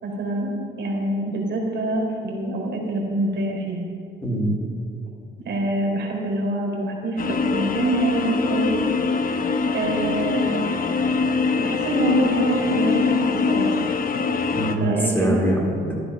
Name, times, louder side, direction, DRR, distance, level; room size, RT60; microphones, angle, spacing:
voice 1, 0.0-0.5 0.8-3.9 5.4-8.8 9.2-9.4 9.7-10.6 11.6-14.0 14.7-15.4, right 2 dB, 65° right, -1 dB, 3.8 m, -26 dB
voice 2, 4.2-4.5 14.5-15.9, right 1 dB, 10° left, -2 dB, 3.9 m, -23 dB
sound 1, 7.2-14.8, left 4 dB, 45° left, 1.0 m, -23 dB
14.5 x 11.0 x 5.6 m, 2.6 s
cardioid pair, 90°, 20 cm